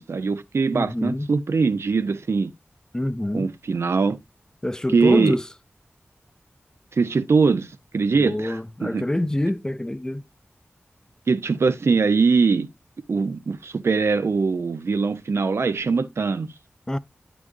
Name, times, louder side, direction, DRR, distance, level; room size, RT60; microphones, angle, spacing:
voice 1, 0.0-2.5 3.3-4.2 4.9-5.4 6.9-9.0 11.3-12.7 13.1-16.5, right 4 dB, 80° right, 0.4 m, -22 dB
voice 2, 0.7-1.3 2.9-3.5 4.6-5.5 8.1-10.2 16.9-17.0, left 1 dB, 15° left, 0.4 m, -26 dB
9.2 x 6.2 x 2.4 m
wide cardioid pair, 70°, 4 cm